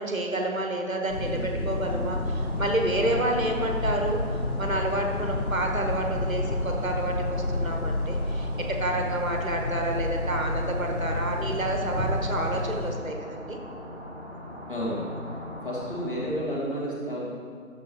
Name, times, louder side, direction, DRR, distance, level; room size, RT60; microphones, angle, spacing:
voice 1, 0.0-4.2 4.6-8.5 8.8-13.6, right 1 dB, 70° right, 1 dB, 1.3 m, -29 dB
sound 1, 1.1-13.0, left 2 dB, 85° left, 1.1 m, -30 dB
sound 2, 1.8-16.2, equal, 45° right, 1.2 m, -41 dB
voice 2, 14.7-15.1 15.6-17.3, equal, 35° left, -7 dB, 2.2 m, -31 dB
11.0 x 7.0 x 3.0 m, 2.2 s
figure-of-eight pair, 170°, 43 cm